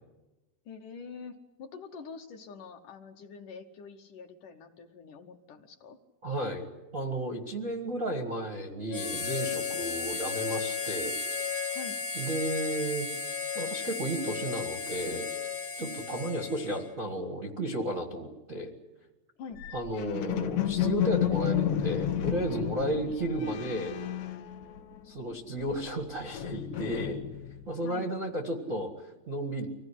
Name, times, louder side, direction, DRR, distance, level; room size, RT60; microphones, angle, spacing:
voice 1, 0.7-6.0 11.7-12.0 15.8-16.2 19.4-19.6 22.8-23.2 27.8-28.1, left 5 dB, 65° left, 4 dB, 2.2 m, -45 dB
voice 2, 6.2-6.7 6.9-11.2 12.1-13.1 13.5-15.3 15.8-18.7 19.7-23.9 25.0-27.2 27.7-29.6, right 1 dB, 75° right, 2 dB, 0.7 m, -33 dB
Harmonica, 8.9-16.9, left 5 dB, 50° left, 1.5 m, -34 dB
sound 1, 19.6-25.2 25.4-27.7, left 10 dB, 85° left, 3.3 m, -32 dB
25.5 x 17.0 x 9.9 m, 1.1 s
omnidirectional pair, 4.7 m